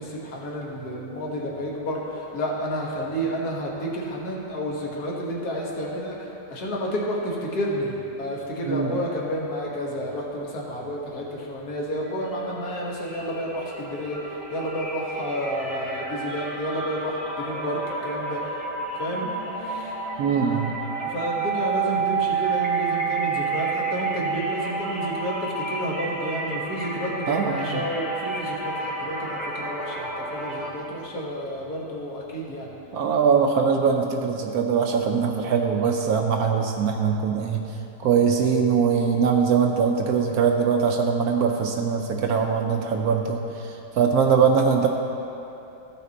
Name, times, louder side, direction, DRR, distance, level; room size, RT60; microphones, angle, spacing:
voice 1, 0.0-18.6 19.0-19.3 19.6-20.0 21.0-32.7, equal, 65° left, -3 dB, 1.9 m, -30 dB
sound 1, 12.1-12.3 12.6-30.7, right 4 dB, ahead, 1.1 m, -30 dB
voice 2, 20.2-20.8 27.3-27.9 32.9-37.6 38.0-44.9, right 6 dB, 70° right, 3 dB, 1.0 m, -22 dB
14.5 x 5.8 x 4.1 m, 3.0 s
omnidirectional pair, 1.8 m